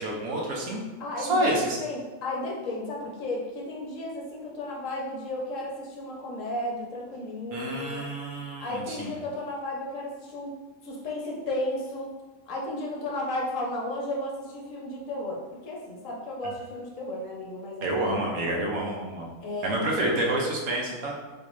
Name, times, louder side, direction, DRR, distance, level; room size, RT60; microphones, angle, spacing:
voice 1, 0.0-0.8 1.2-1.8 7.5-9.1 17.8-19.3 19.6-21.1, right 1 dB, 85° right, -1 dB, 1.2 m, -28 dB
voice 2, 1.0-1.5 1.8-8.1 8.6-10.5 10.8-12.1 12.5-18.0 19.4-20.1, left 1 dB, 65° left, -2 dB, 1.1 m, -34 dB
3.7 x 2.6 x 3.0 m, 1.2 s
omnidirectional pair, 1.5 m